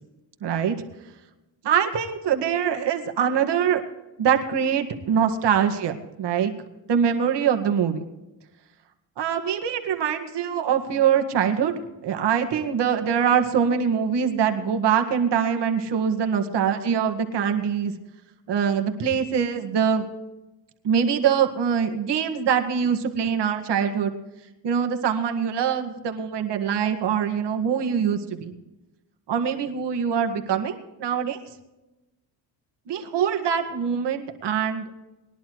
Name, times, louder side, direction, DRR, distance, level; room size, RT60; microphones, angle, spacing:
voice 1, 0.4-0.8 1.6-3.8 4.2-6.5 6.9-8.0 9.2-11.7 12.0-17.9 18.5-20.1 20.8-24.1 24.6-28.5 29.3-31.4 32.9-34.9, right 7 dB, 60° right, 4 dB, 1.9 m, -23 dB
21.0 x 11.0 x 3.1 m, 1.0 s
cardioid pair, 90°, 45 cm